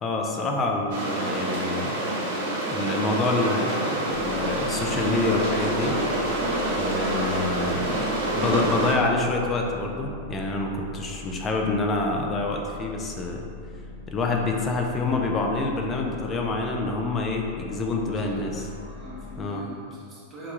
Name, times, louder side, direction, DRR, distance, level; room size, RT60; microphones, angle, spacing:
voice 1, 0.0-2.0 2.7-6.0 6.8-13.4 14.1-18.6 19.4-19.7, left 2 dB, 20° left, 1 dB, 0.3 m, -27 dB
sound 1, 0.9-8.9, right 1 dB, 55° right, 0.8 m, -27 dB
sound 2, 4.1-19.4, left 2 dB, 75° left, 0.6 m, -41 dB
voice 2, 18.1-18.5 18.9-20.5, equal, 15° right, -7 dB, 0.7 m, -42 dB
3.5 x 2.2 x 3.0 m, 2.4 s
supercardioid pair, 155°, 0 cm